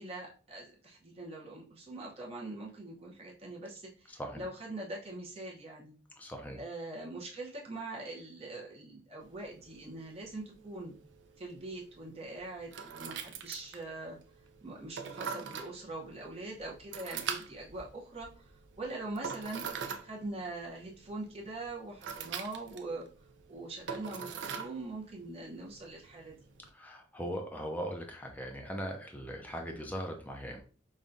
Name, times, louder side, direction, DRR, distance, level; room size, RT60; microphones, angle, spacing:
voice 1, 0.0-6.0 6.5-10.9 11.4-14.2 14.6-19.6 20.0-23.1 23.5-26.4, right 2 dB, 30° right, -3 dB, 0.7 m, -43 dB
voice 2, 4.1-4.4 6.2-6.6 26.7-30.6, equal, 10° left, 2 dB, 0.5 m, -39 dB
sound 1, 9.2-26.7, right 6 dB, 70° right, 0.5 m, -44 dB
5.3 x 2.3 x 2.5 m, 0.38 s
head